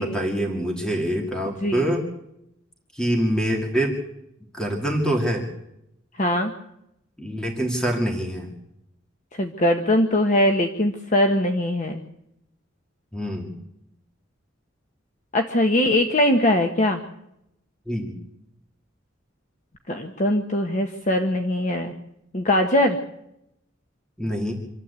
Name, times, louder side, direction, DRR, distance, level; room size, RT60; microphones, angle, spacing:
voice 1, 0.0-2.0 2.9-4.0 4.5-5.5 7.2-8.5 13.1-13.6 17.9-18.2 24.2-24.5, equal, 5° left, 1 dB, 2.4 m, -25 dB
voice 2, 6.2-6.5 9.3-12.0 15.3-17.0 19.9-21.9 22.3-23.0, left 1 dB, 40° left, 4 dB, 1.3 m, -21 dB
26.0 x 13.0 x 8.3 m, 0.83 s
head